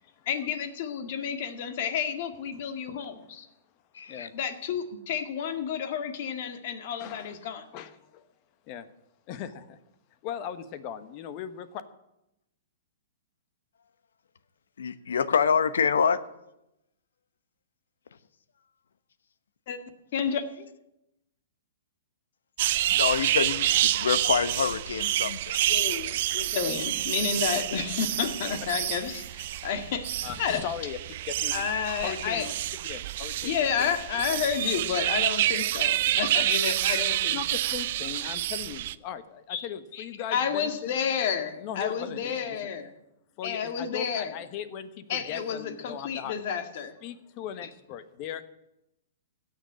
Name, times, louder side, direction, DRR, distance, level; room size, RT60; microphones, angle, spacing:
voice 1, 0.3-3.5 4.3-7.7 19.7-19.8 20.1-20.7 25.7-30.6 31.5-32.5 33.4-37.4 39.5-39.7 39.9-40.0 40.3-42.9 43.4-44.3 45.1-46.9, left 7 dB, 50° left, 8 dB, 1.9 m, -30 dB
voice 2, 2.5-3.0 4.1-4.3 7.0-7.4 7.7-8.3 8.7-8.9 9.3-9.8 10.2-11.8 30.2-31.5 32.0-32.5 32.8-34.0 34.4-34.5 36.0-36.5 37.3-40.9 41.6-42.7 43.4-46.3 47.0-48.4, left 9 dB, 35° left, 12 dB, 1.1 m, -39 dB
voice 3, 3.9-4.3 14.8-16.2 22.9-25.6, left 6 dB, 90° left, 14 dB, 1.0 m, -26 dB
sound 1, 22.6-38.9, right 14 dB, 50° right, 0.5 m, -28 dB
16.5 x 6.7 x 9.6 m, 0.86 s
hypercardioid pair, 155°, 0 cm